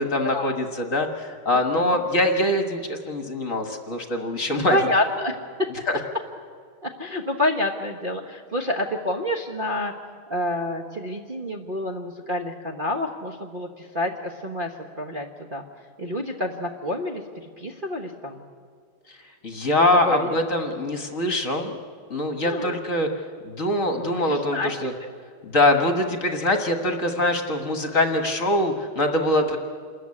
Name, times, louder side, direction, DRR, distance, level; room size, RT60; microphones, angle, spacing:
voice 1, 0.0-4.8 19.4-21.8 22.1-23.1 23.4-24.9 25.4-29.6, left 1 dB, 40° left, 5 dB, 1.6 m, -23 dB
voice 2, 4.5-5.7 6.8-9.9 10.3-15.6 16.0-17.2 17.6-18.4 19.8-20.3 22.4-22.8 24.0-24.7, left 1 dB, 30° right, -1 dB, 1.1 m, -28 dB
27.5 x 14.0 x 9.7 m, 2.1 s
omnidirectional pair, 2.4 m